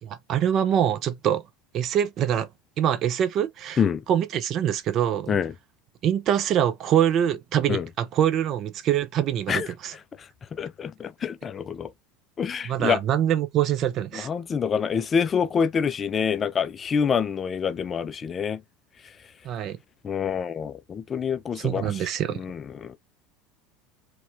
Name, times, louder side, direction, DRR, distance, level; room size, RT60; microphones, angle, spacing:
voice 1, 0.0-1.4 1.7-2.5 2.8-3.8 4.1-5.4 6.0-9.9 12.6-14.3 19.4-19.8 21.6-22.4, right 10 dB, 45° right, 0.5 m, -24 dB
voice 2, 10.2-11.9 12.4-13.0 14.1-18.6 20.0-22.0 22.3-23.0, left 7 dB, 30° left, 0.3 m, -26 dB
4.1 x 2.2 x 2.6 m
figure-of-eight pair, 75°, 0 cm